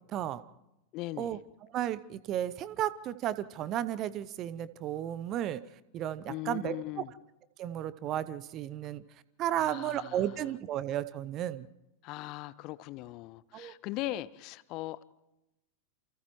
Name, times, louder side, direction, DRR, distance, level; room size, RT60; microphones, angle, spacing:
voice 1, 0.1-0.4 1.2-1.4 1.7-5.6 5.9-7.0 7.6-9.0 9.4-11.7 13.5-13.7, right 11 dB, 35° right, 17 dB, 0.8 m, -33 dB
voice 2, 0.9-1.4 6.3-7.1 9.5-10.4 12.0-15.0, left 17 dB, 40° left, 19 dB, 0.7 m, -39 dB
28.5 x 28.5 x 3.1 m, 0.94 s
figure-of-eight pair, 90°, 0 cm